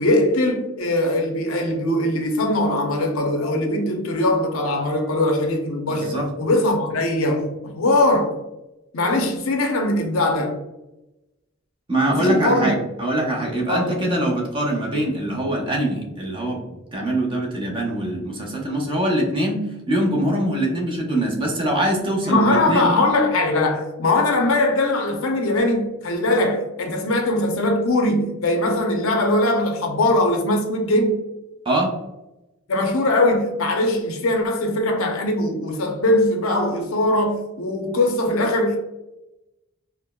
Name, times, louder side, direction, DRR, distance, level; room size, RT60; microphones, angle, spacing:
voice 1, 0.0-8.4 8.9-10.6 12.1-12.7 13.7-14.0 22.2-31.2 32.7-38.8, left 1 dB, 85° left, 0.6 m, -21 dB
voice 2, 5.9-6.3 11.9-16.6 16.9-22.9 31.6-32.0, right 1 dB, 25° right, 0.7 m, -23 dB
4.4 x 2.0 x 2.2 m
head